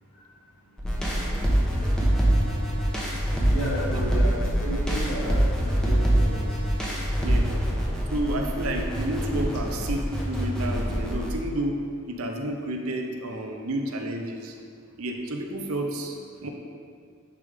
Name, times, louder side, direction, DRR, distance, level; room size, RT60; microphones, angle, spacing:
sound 1, 0.8-11.3, right 1 dB, 5° left, 0.9 m, -25 dB
voice 1, 3.5-6.5 7.1-7.2, equal, 85° left, -5 dB, 1.6 m, -33 dB
voice 2, 7.2-7.6 8.1-11.8 12.1-14.5 15.0-16.5, right 1 dB, 80° right, 3 dB, 0.7 m, -30 dB
9.8 x 3.6 x 3.5 m, 2.1 s
head